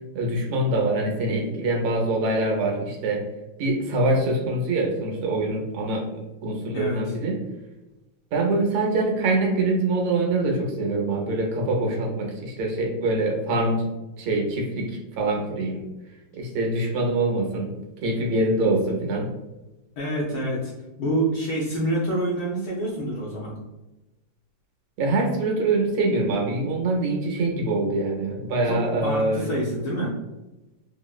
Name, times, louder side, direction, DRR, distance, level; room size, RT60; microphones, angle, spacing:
voice 1, 0.1-3.2 3.6-6.1 6.4-7.4 8.3-13.8 14.2-15.8 16.4-17.7 18.0-19.3 25.0-29.5, right 2 dB, 80° right, 1 dB, 1.6 m, -24 dB
voice 2, 6.7-7.1 20.0-20.7 21.0-23.5 28.6-30.1, right 1 dB, 70° left, -5 dB, 1.0 m, -27 dB
4.3 x 2.1 x 2.3 m, 1.0 s
omnidirectional pair, 2.4 m